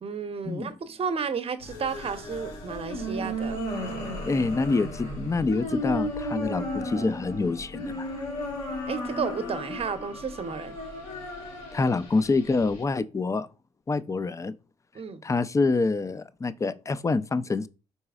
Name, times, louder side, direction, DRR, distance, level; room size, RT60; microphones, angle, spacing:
voice 1, 0.0-3.6 8.9-10.8 14.9-15.2, right 6 dB, 45° right, 0.8 m, -32 dB
sound 1, 1.6-12.8, left 1 dB, 80° left, 1.6 m, -34 dB
voice 2, 4.2-8.2 11.7-13.5 13.9-14.5 15.2-17.7, left 3 dB, 20° left, 0.4 m, -26 dB
4.6 x 4.1 x 2.4 m
hypercardioid pair, 45°, 14 cm